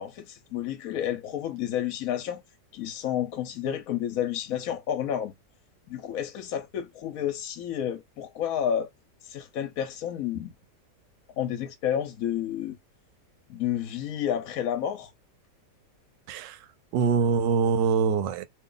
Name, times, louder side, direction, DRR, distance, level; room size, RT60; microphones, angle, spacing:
voice 1, 0.0-2.4 2.7-5.3 5.9-8.9 9.2-10.5 11.4-12.8 13.5-15.1, left 10 dB, 65° left, 0.9 m, -30 dB
voice 2, 16.3-16.7 16.9-18.4, right 6 dB, 85° right, 1.3 m, -24 dB
2.9 x 2.3 x 3.8 m
omnidirectional pair, 1.9 m